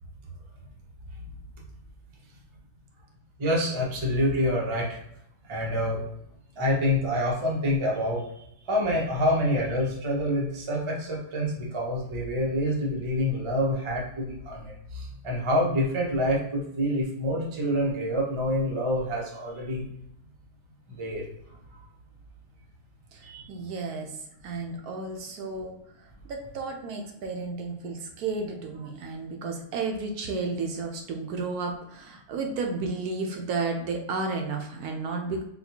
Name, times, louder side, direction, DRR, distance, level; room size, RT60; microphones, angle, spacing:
voice 1, 3.4-5.0 5.5-6.0 6.6-19.9 21.0-21.2 23.2-23.4, equal, 35° right, -3 dB, 0.4 m, -27 dB
voice 2, 23.1-35.4, right 3 dB, 70° right, 2 dB, 1.0 m, -33 dB
4.1 x 2.2 x 2.7 m, 0.75 s
omnidirectional pair, 1.7 m